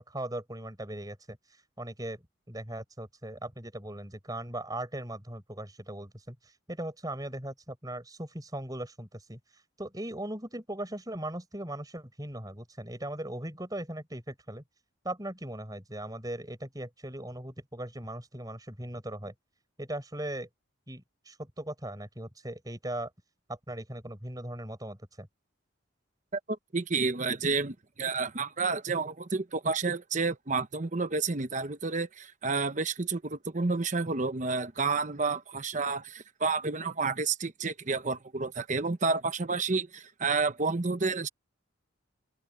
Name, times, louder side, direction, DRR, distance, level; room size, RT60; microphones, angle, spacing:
voice 1, 0.0-14.6 15.0-19.3 19.8-20.5 20.9-23.1 23.5-25.3, right 1 dB, 20° right, 5.6 m, -39 dB
voice 2, 26.7-41.3, right 4 dB, 40° right, 0.9 m, -30 dB
head